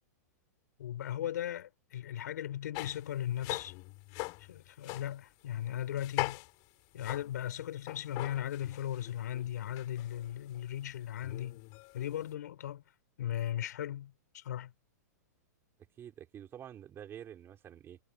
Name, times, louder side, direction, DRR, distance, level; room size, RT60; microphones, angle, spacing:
voice 1, 0.8-3.7 4.4-6.4 6.9-11.6 11.9-12.8 13.2-14.7, left 11 dB, 75° left, 3.8 m, -37 dB
sound 1, 2.7-3.0 3.4-5.1 6.0-6.6 7.0-10.7 11.2-12.3, left 28 dB, 45° left, 4.7 m, -41 dB
voice 2, 16.0-18.0, right 10 dB, 25° right, 4.9 m, -48 dB
hypercardioid pair, 130°, 9 cm